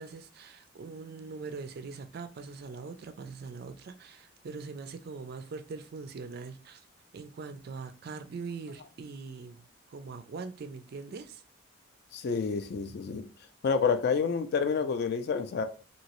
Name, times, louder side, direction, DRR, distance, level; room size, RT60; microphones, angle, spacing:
voice 1, 0.0-6.9 7.1-11.4, right 4 dB, 45° right, 0.3 m, -42 dB
voice 2, 12.1-13.3 13.6-15.7, left 5 dB, 50° left, 0.3 m, -28 dB
3.0 x 2.7 x 2.9 m
head